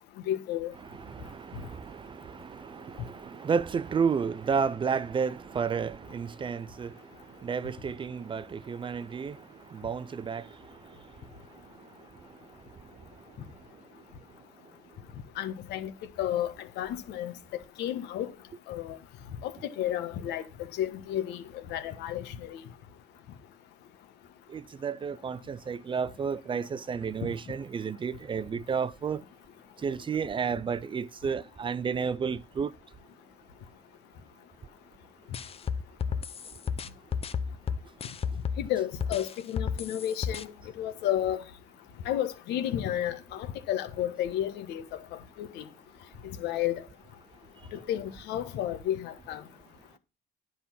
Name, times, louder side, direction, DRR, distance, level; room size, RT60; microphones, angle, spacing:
voice 1, 0.3-0.7 15.4-15.9 16.2-17.3 17.8-18.3 18.7-19.0 19.4-19.5 19.8-20.4 20.8-21.4 21.7-22.6 38.6-40.5 40.8-41.4 42.0-44.8 45.4-45.6 46.4-46.7 47.7-49.4, left 11 dB, 85° left, 1.3 m, -31 dB
voice 2, 0.9-7.0 7.4-9.4 9.7-10.5 24.5-29.2 29.8-32.7, right 6 dB, 30° right, 0.5 m, -31 dB
sound 1, 35.3-38.7 39.0-40.4, left 6 dB, 35° left, 0.8 m, -32 dB
10.0 x 5.5 x 5.7 m
cardioid pair, 110°, 17 cm